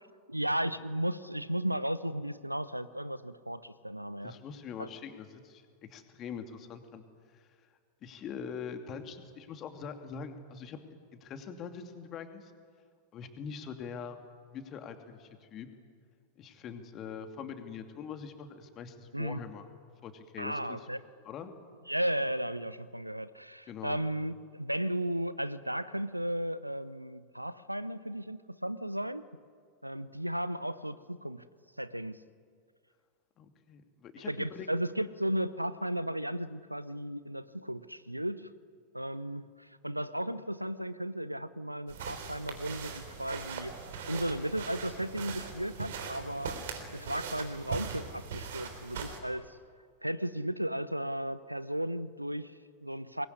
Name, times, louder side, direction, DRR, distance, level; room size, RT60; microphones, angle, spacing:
voice 1, 0.3-4.4 4.8-4.9 19.1-19.4 20.4-21.0 21.9-29.3 29.8-31.5 31.8-32.2 34.3-38.5 38.9-43.8 44.1-46.6 46.9-49.6 50.0-53.3, right 1 dB, 90° right, 17 dB, 0.8 m, -35 dB
voice 2, 4.2-7.0 7.3-7.5 8.0-10.8 11.2-12.5 13.1-14.2 14.5-15.7 16.4-19.7 20.0-20.8 21.2-21.5 23.7-24.0 33.4-34.7, left 6 dB, 30° left, 6 dB, 2.6 m, -43 dB
sound 1, 41.9-49.2, right 6 dB, 60° right, 3.6 m, -41 dB
25.0 x 21.5 x 9.8 m, 2.1 s
figure-of-eight pair, 90°, 0 cm